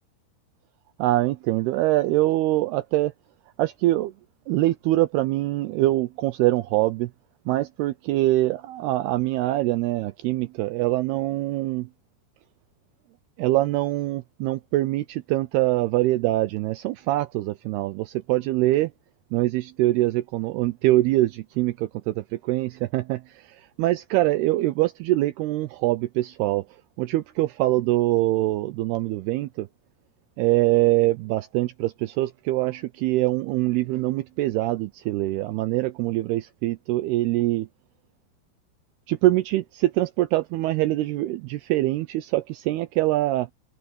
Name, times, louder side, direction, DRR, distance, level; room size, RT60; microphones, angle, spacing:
voice 1, 1.0-3.1 3.6-4.1 4.5-7.1 7.5-11.9 13.4-18.9 19.3-26.6 27.0-29.7 30.4-37.7 39.1-43.5, right 17 dB, 85° right, 2.3 m, -24 dB
omnidirectional pair, 5.2 m